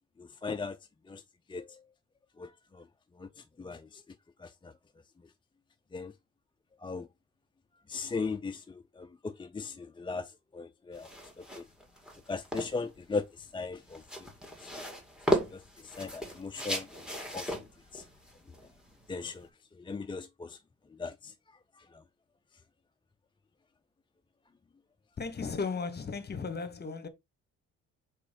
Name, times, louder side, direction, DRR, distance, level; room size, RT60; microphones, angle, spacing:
voice 1, 0.2-0.8 1.0-1.2 1.5-1.8 2.4-2.9 3.1-4.7 5.2-5.3 5.9-6.1 6.8-7.1 7.9-11.6 12.3-14.7 15.5-17.5 17.9-18.0 19.1-20.6 20.9-22.0, left 4 dB, 15° left, 0.4 m, -39 dB
sound 1, 10.9-19.5, equal, 5° right, 2.1 m, -36 dB
voice 2, 25.2-27.1, left 4 dB, 35° left, 1.2 m, -35 dB
4.9 x 4.3 x 5.2 m
cardioid pair, 90°, 30 cm